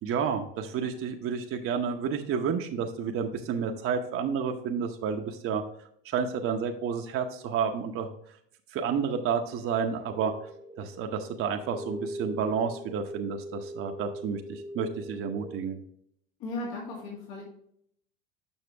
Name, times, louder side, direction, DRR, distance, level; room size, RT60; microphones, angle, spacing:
voice 1, 0.0-5.6 6.0-8.1 8.7-10.3 10.8-15.8, right 6 dB, 45° right, 4 dB, 0.8 m, -30 dB
sound 1, 10.1-15.6, equal, 10° right, 0.7 m, -41 dB
voice 2, 16.4-17.4, left 2 dB, 70° left, -3 dB, 2.2 m, -36 dB
7.1 x 5.7 x 3.3 m, 0.69 s
hypercardioid pair, 85°, 30 cm